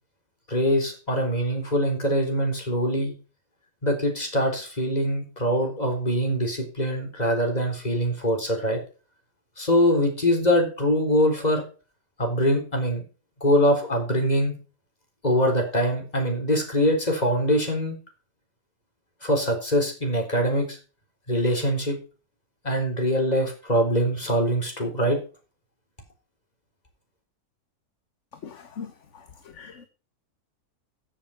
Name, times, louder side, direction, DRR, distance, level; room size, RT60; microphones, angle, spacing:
voice 1, 0.5-3.1 3.8-8.8 9.6-11.6 12.2-13.0 13.4-14.5 15.2-18.0 19.2-20.8 21.3-22.0 22.6-25.2, equal, 25° left, 3 dB, 4.0 m, -23 dB
voice 2, 28.4-28.9 29.6-29.9, left 6 dB, 55° left, 9 dB, 1.4 m, -39 dB
14.5 x 7.2 x 5.8 m, 0.36 s
omnidirectional pair, 1.6 m